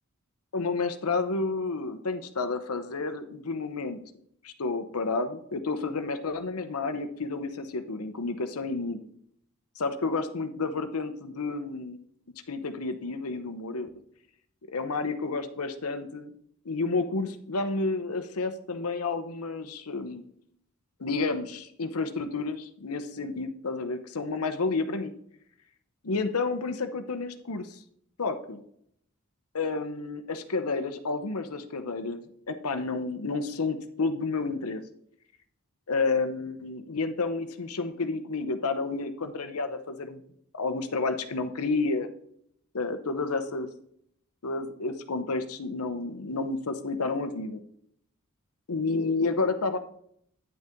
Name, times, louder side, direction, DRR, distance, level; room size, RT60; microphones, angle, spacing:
voice 1, 0.5-4.0 4.4-9.1 9.8-12.0 12.5-13.9 14.7-16.3 16.6-20.2 21.0-25.1 26.0-27.8 28.2-28.6 29.5-32.2 32.5-34.8 35.9-40.2 40.5-42.1 42.7-43.7 44.4-47.6 48.7-49.8, left 3 dB, 85° left, 9 dB, 0.9 m, -30 dB
9.8 x 6.7 x 3.6 m, 0.68 s
head